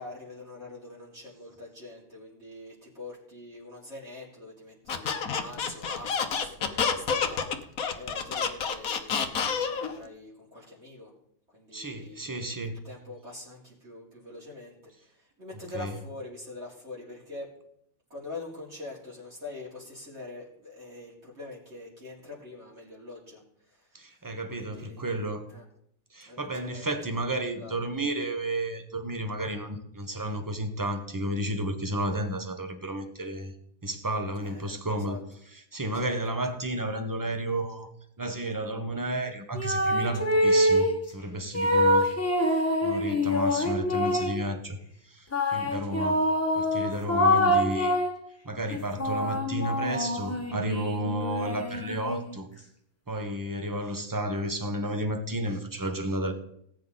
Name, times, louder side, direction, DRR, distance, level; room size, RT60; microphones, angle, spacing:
voice 1, 0.0-11.1 11.5-12.3 12.7-17.5 18.1-23.9 24.5-25.6 26.3-27.8 34.4-35.2 35.9-36.1 41.7-41.8, left 2 dB, 50° right, -6 dB, 3.7 m, -44 dB
Squeak, 4.9-9.9, left 6 dB, 75° left, 1.5 m, -28 dB
voice 2, 11.7-12.8 15.7-15.9 23.9-25.5 26.1-33.5 33.8-35.2 35.5-37.9 38.2-42.1 42.8-44.8 45.0-46.3 46.6-48.0 48.4-52.5 53.1-56.3, right 1 dB, 15° right, 6 dB, 1.3 m, -32 dB
sound 1, 39.5-41.0 41.5-44.5 45.3-48.2 48.7-52.3, left 1 dB, 10° left, 1.5 m, -25 dB
18.5 x 9.0 x 4.2 m, 0.71 s
omnidirectional pair, 1.5 m